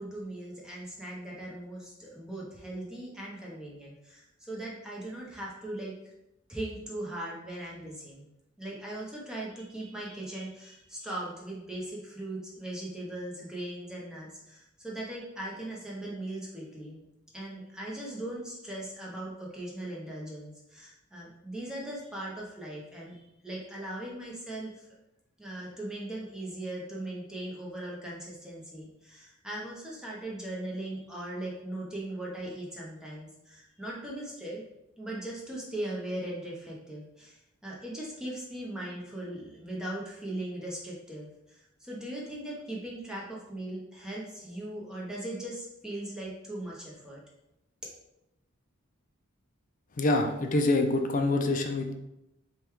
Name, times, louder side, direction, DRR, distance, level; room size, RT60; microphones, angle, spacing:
voice 1, 0.0-5.9 6.5-8.3 8.6-17.0 17.3-24.9 25.4-34.6 35.0-41.3 41.6-47.2, right 1 dB, 5° right, -5 dB, 0.9 m, -39 dB
voice 2, 50.0-51.9, left 2 dB, 40° left, 4 dB, 0.4 m, -26 dB
5.1 x 2.3 x 3.1 m, 0.88 s
head